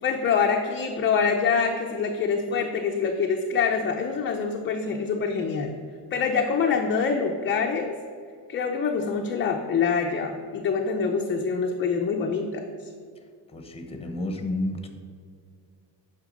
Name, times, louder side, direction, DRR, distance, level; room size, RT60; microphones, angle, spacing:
voice 1, 0.0-5.7 6.1-8.0 8.5-12.6, left 5 dB, 30° left, 2 dB, 0.5 m, -25 dB
voice 2, 13.5-14.9, left 1 dB, 15° left, 4 dB, 0.8 m, -31 dB
9.1 x 5.8 x 5.1 m, 2.2 s
cardioid pair, 175°, 42 cm